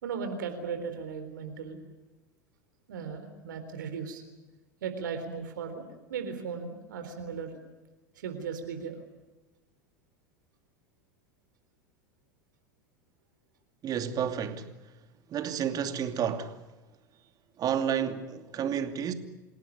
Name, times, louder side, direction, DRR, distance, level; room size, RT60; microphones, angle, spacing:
voice 1, 0.0-1.8 2.9-4.2 4.8-7.6 8.2-9.0, right 6 dB, 75° right, 3.8 m, -37 dB
voice 2, 13.8-14.7 15.3-16.6 17.6-19.1, right 8 dB, 35° right, 2.7 m, -30 dB
27.5 x 17.5 x 9.8 m
hypercardioid pair, 85°, 11 cm